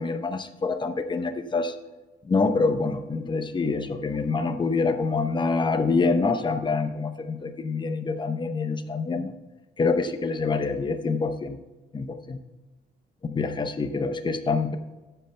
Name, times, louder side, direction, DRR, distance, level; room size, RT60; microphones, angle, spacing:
voice 1, 0.0-1.7 2.2-9.3 9.8-11.6 11.9-12.4 13.2-14.8, left 4 dB, 25° left, 7 dB, 0.8 m, -26 dB
12.0 x 8.0 x 3.3 m, 1.2 s
cardioid pair, 140°, 18 cm